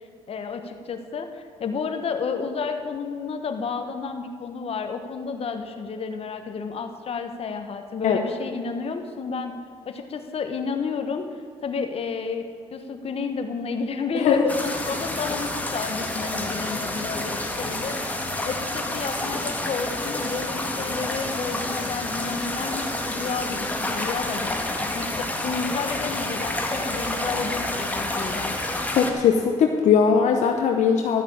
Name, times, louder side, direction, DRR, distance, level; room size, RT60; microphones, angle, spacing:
voice 1, 0.3-9.5 9.8-11.2 11.6-28.5, left 5 dB, 50° left, 6 dB, 1.2 m, -31 dB
voice 2, 14.1-14.5 28.9-31.2, left 6 dB, 65° left, 3 dB, 0.9 m, -20 dB
sound 1, 14.5-29.1, left 1 dB, 10° left, 1.8 m, -29 dB
12.5 x 5.7 x 8.6 m, 2.2 s
cardioid pair, 75°, 13 cm